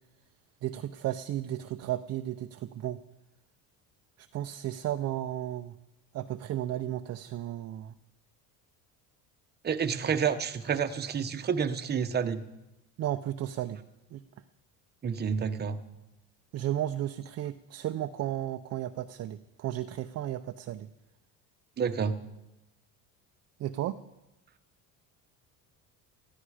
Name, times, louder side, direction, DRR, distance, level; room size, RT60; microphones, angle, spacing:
voice 1, 0.6-3.0 4.3-5.7 6.1-7.9 10.0-10.1 13.0-13.8 14.1-14.2 16.5-20.9 23.6-24.0, right 12 dB, 45° right, 9 dB, 0.6 m, -34 dB
voice 2, 9.6-12.4 15.0-15.8 21.8-22.2, right 6 dB, 25° right, 9 dB, 1.0 m, -29 dB
20.0 x 14.0 x 4.9 m, 0.97 s
cardioid pair, 145°, 37 cm